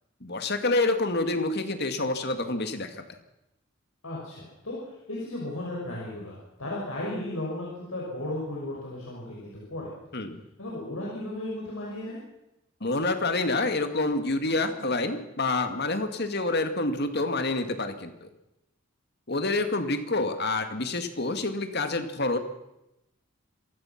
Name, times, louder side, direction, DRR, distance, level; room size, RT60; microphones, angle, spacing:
voice 1, 0.2-3.0 10.1-10.4 12.8-18.3 19.3-22.4, left 2 dB, 50° left, 8 dB, 2.1 m, -27 dB
voice 2, 4.0-6.3 6.6-9.9 10.6-12.2, left 1 dB, 80° left, -4 dB, 6.1 m, -35 dB
26.5 x 16.5 x 6.0 m, 0.90 s
head